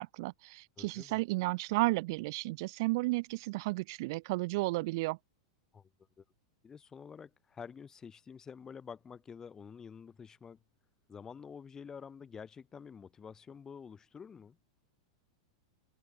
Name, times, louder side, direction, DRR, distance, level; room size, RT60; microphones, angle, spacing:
voice 1, 0.0-5.2, right 23 dB, 55° right, 1.5 m, -33 dB
voice 2, 0.8-1.2 5.7-5.9 6.2-6.3 6.6-10.6 11.1-14.6, left 6 dB, 20° left, 5.7 m, -49 dB
open air
hypercardioid pair, 100°, 3 cm